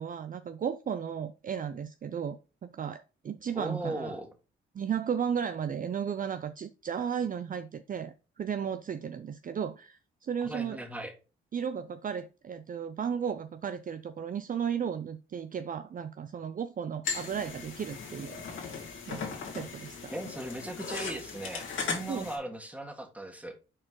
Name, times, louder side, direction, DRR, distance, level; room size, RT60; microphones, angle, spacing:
voice 1, 0.0-2.4 2.7-4.1 4.7-10.8 11.5-18.4 18.6-20.1 22.1-22.3, right 7 dB, 40° right, 10 dB, 0.5 m, -34 dB
voice 2, 3.5-4.3 10.4-11.1 20.1-23.5, right 1 dB, 5° right, 4 dB, 1.8 m, -38 dB
sound 1, 17.0-22.4, left 5 dB, 70° left, 2.7 m, -38 dB
6.2 x 4.4 x 4.7 m, 0.32 s
cardioid pair, 80°, 21 cm